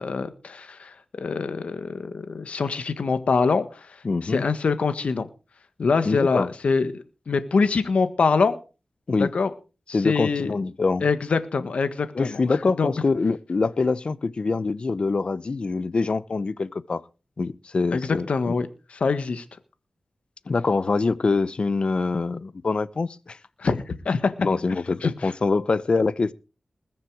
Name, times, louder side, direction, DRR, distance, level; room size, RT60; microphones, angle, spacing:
voice 1, 0.0-3.9 4.2-5.2 5.8-8.6 9.2-9.5 10.0-10.5 11.0-12.9 17.9-19.4 23.6-23.8 24.0-24.3 25.0-25.3, left 4 dB, 75° left, 1.5 m, -24 dB
voice 2, 4.0-4.4 6.0-6.5 9.1-9.3 9.9-11.1 12.1-17.0 17.4-18.6 20.5-23.4 24.4-26.3, left 4 dB, 55° left, 0.8 m, -24 dB
21.0 x 7.4 x 4.9 m
wide cardioid pair, 85°, 2 cm